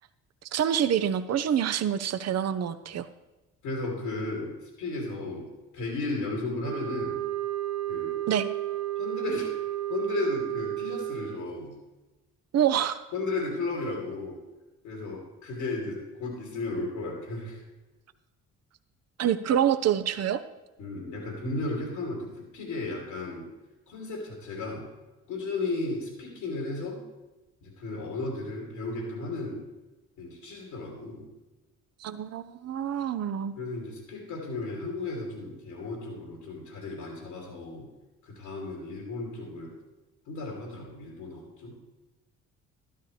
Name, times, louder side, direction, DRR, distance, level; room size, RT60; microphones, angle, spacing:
voice 1, 0.5-3.1 8.3-8.5 12.5-13.0 19.2-20.4 32.0-33.5, right 9 dB, 50° right, 11 dB, 0.8 m, -26 dB
voice 2, 3.6-5.5 5.7-7.2 7.9-8.2 9.0-9.5 9.9-11.7 13.1-14.4 14.8-17.7 20.8-23.5 23.9-24.9 25.3-27.0 27.6-29.6 30.2-31.3 33.6-37.9 38.2-39.7 40.3-41.7, left 3 dB, 80° left, -1 dB, 2.9 m, -34 dB
sound 1, 6.6-11.5, right 13 dB, 85° right, 1.0 m, -32 dB
12.5 x 11.0 x 3.3 m, 1.1 s
hypercardioid pair, 55°, 34 cm